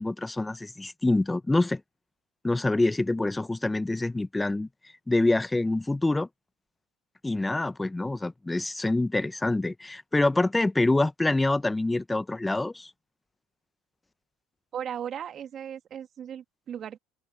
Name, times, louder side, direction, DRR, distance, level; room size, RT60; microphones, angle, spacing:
voice 1, 0.0-1.8 2.4-4.7 5.1-6.3 7.2-12.9, left 2 dB, 10° left, 1.1 m, -26 dB
voice 2, 14.7-17.0, right 9 dB, 40° right, 2.4 m, -37 dB
open air
hypercardioid pair, 75°, 0 cm